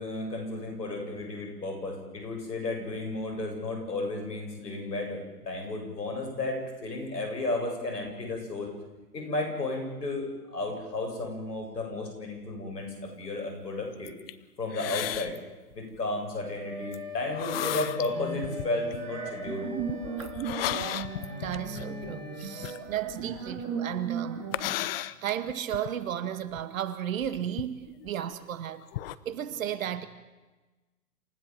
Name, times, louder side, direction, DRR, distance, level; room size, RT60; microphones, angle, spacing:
voice 1, 0.0-8.7 9.1-14.1 14.6-15.4 15.7-19.7, left 2 dB, 80° left, 8.0 m, -33 dB
sound 1, 13.9-14.3 14.7-15.4 15.7-16.0 16.9-17.0 17.3-18.1 18.4-19.0 19.8-23.6 24.5-25.9 26.5-26.6 27.2-28.4 28.8-29.1, left 13 dB, 35° left, 0.8 m, -34 dB
Wind instrument woodwind instrument, 16.4-22.9, left 5 dB, 10° left, 4.9 m, -43 dB
sound 2, 17.5-24.7, right 5 dB, 25° right, 3.8 m, -37 dB
voice 2, 21.1-24.4 25.2-28.8 29.3-30.1, right 10 dB, 55° right, 1.9 m, -34 dB
28.0 x 16.0 x 7.6 m
hypercardioid pair, 125°, 48 cm